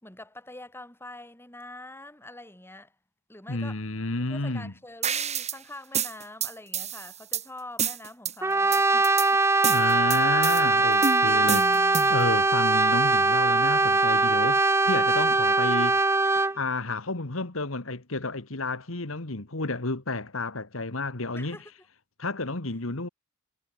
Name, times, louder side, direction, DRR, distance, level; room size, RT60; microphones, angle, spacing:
voice 1, 0.0-2.9 3.3-3.8 4.3-9.4 21.3-21.7, left 2 dB, 10° left, 6.5 m, -45 dB
voice 2, 3.5-4.7 9.7-16.1 16.5-21.6 22.2-23.1, left 2 dB, 70° left, 2.0 m, -31 dB
sound 1, 5.0-5.6 5.9-7.4 7.8-8.3 8.7-9.3 9.6-10.6 11.0-12.2, right 7 dB, 30° right, 3.5 m, -29 dB
Brass instrument, 8.4-16.6, right 3 dB, 10° right, 0.6 m, -22 dB
head